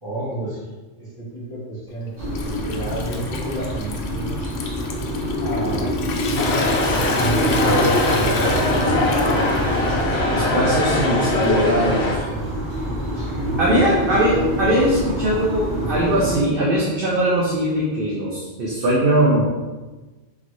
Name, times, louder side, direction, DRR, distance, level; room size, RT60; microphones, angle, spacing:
voice 1, 0.0-4.3 5.4-6.1 7.1-8.6, right 1 dB, 20° right, -10 dB, 1.2 m, -30 dB
Water tap faucet / Sink (filling or washing) / Trickle dribble, 1.9-11.8, left 4 dB, 90° left, 0.9 m, -34 dB
sound 1, 2.2-16.4, equal, 80° right, 1.4 m, -26 dB
sound 2, 6.4-12.2, left 2 dB, 65° left, 0.9 m, -21 dB
voice 2, 10.3-12.2 13.2-13.3 13.6-19.4, right 1 dB, 55° right, -5 dB, 0.9 m, -20 dB
4.0 x 3.2 x 3.1 m, 1.2 s
omnidirectional pair, 1.2 m